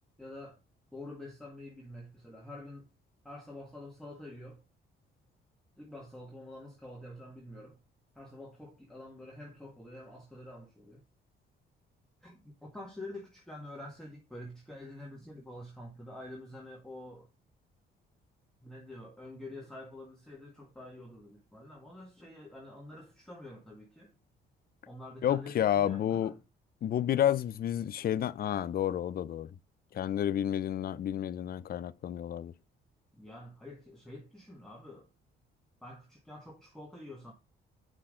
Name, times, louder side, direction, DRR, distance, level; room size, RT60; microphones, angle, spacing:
voice 1, 0.2-0.6 0.9-2.9 3.2-4.6 5.8-7.8 8.1-11.0 12.2-17.3 18.6-24.1 24.9-26.4 33.1-35.1 35.8-37.3, left 1 dB, ahead, 1.7 m, -47 dB
voice 2, 25.2-26.3 26.8-29.5 29.9-32.5, left 10 dB, 50° left, 0.5 m, -30 dB
8.1 x 5.9 x 3.7 m
cardioid pair, 90°, 20 cm